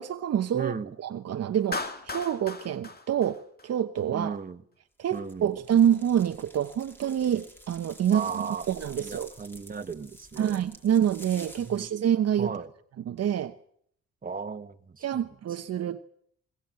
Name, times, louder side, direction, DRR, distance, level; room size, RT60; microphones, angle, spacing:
voice 1, 0.0-0.7 1.0-4.4 5.0-9.3 10.4-12.5 13.1-13.5 15.0-16.1, right 9 dB, 55° right, 1.0 m, -27 dB
voice 2, 0.5-0.9 4.1-4.6 5.1-5.5 8.1-8.7 9.0-10.6 11.6-11.9 12.4-12.7 14.2-15.2, right 5 dB, 30° right, 1.6 m, -35 dB
Clapping, 1.7-4.0, left 3 dB, 30° left, 2.4 m, -37 dB
sound 1, 5.1-11.9, right 1 dB, 5° left, 4.2 m, -50 dB
22.0 x 22.0 x 7.7 m
cardioid pair, 90°, 30 cm